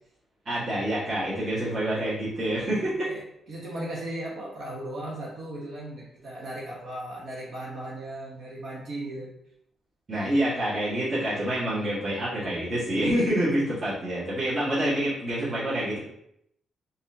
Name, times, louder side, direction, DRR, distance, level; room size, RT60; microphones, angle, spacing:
voice 1, 0.4-3.1 10.1-16.0, right 1 dB, 40° right, -10 dB, 1.5 m, -27 dB
voice 2, 2.9-9.3, right 1 dB, 65° right, -5 dB, 1.0 m, -37 dB
4.0 x 2.7 x 2.7 m, 0.76 s
cardioid pair, 80°, 0 cm